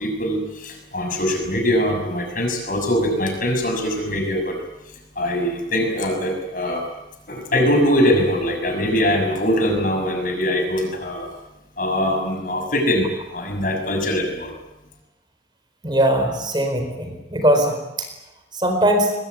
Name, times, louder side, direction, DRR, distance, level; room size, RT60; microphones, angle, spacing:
voice 1, 0.0-4.5 5.1-6.8 7.3-11.3 11.8-14.5, equal, 45° left, 3 dB, 6.7 m, -22 dB
voice 2, 15.8-17.7 18.6-19.1, right 1 dB, 25° right, 5 dB, 4.5 m, -19 dB
24.0 x 22.0 x 9.5 m, 0.94 s
head